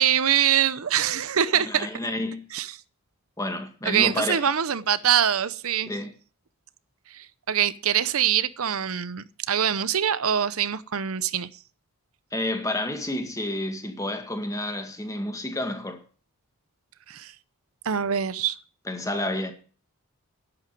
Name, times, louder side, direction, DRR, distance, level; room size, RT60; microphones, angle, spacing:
voice 1, 0.0-1.9 2.5-2.7 3.8-5.9 7.1-11.5 17.1-17.3 17.8-18.6, right 9 dB, 70° right, 0.7 m, -24 dB
voice 2, 1.5-2.4 3.4-4.5 5.9-6.1 12.3-16.0 18.9-19.5, left 1 dB, 15° left, 1.9 m, -30 dB
11.0 x 8.7 x 9.1 m
head